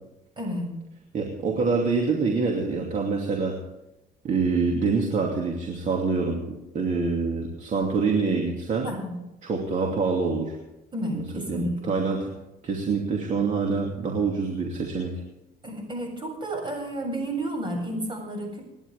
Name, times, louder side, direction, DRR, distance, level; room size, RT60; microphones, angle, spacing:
voice 1, 0.4-0.7 8.8-9.1 10.9-11.9 15.6-18.6, right 1 dB, 30° right, 1 dB, 7.5 m, -31 dB
voice 2, 1.1-3.6 4.2-8.9 9.4-10.6 11.5-12.3 12.6-15.1, right 4 dB, 45° right, 1 dB, 2.7 m, -26 dB
28.0 x 11.0 x 3.6 m, 0.94 s
cardioid pair, 110°, 17 cm